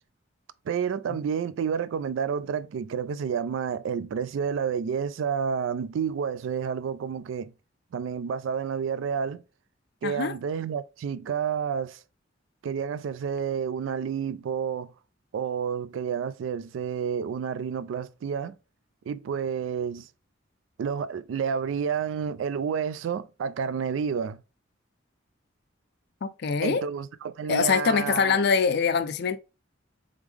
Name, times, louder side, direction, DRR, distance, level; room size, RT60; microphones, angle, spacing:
voice 1, 0.7-7.5 7.9-9.4 10.0-12.0 12.6-14.9 15.3-18.6 19.1-20.1 20.8-24.4 26.6-28.4, right 7 dB, 70° right, 0.3 m, -30 dB
voice 2, 10.0-10.3 26.2-26.9 27.5-29.4, left 5 dB, 55° left, 0.4 m, -24 dB
3.6 x 3.5 x 3.3 m
head